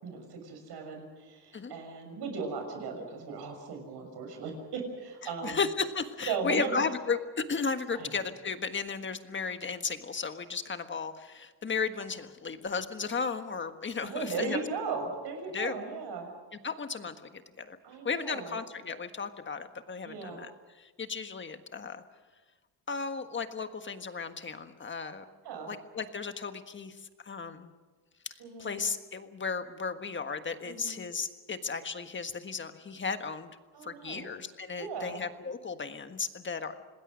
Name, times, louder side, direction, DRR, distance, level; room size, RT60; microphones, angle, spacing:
voice 1, 0.0-5.6 6.3-6.8 7.9-8.1 14.0-16.3 17.8-18.6 20.0-20.4 25.4-25.7 28.4-28.7 30.6-31.0 33.7-34.3 34.8-35.2, right 4 dB, 70° right, 4 dB, 6.6 m, -37 dB
voice 2, 5.4-14.6 15.5-15.8 16.6-17.8 18.0-20.5 20.8-22.0 22.9-25.2 25.7-27.0 27.2-27.7 28.6-33.5 33.8-36.8, left 5 dB, 30° left, 8 dB, 1.5 m, -35 dB
27.0 x 20.0 x 6.4 m, 1.3 s
cardioid pair, 120°, 41 cm